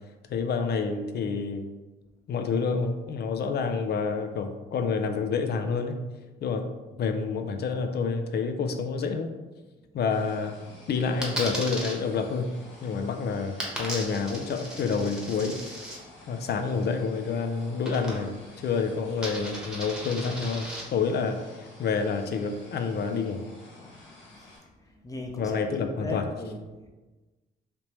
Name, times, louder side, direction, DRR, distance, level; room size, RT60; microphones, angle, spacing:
voice 1, 0.3-1.7 2.3-6.0 6.4-6.7 7.0-9.3 9.9-10.5 10.9-12.5 12.8-15.6 16.3-18.3 18.6-23.4 25.4-26.3, left 5 dB, 55° left, 7 dB, 0.5 m, -28 dB
sound 1, 10.1-24.6, left 2 dB, 70° left, 1.2 m, -50 dB
Coin (dropping), 11.2-11.9 13.6-16.0 17.8-18.5 18.8-20.8, right 1 dB, 5° right, 1.0 m, -36 dB
voice 2, 24.4-26.9, left 2 dB, 15° left, 1 dB, 0.7 m, -38 dB
3.4 x 2.8 x 3.0 m, 1.2 s
cardioid pair, 90°, 20 cm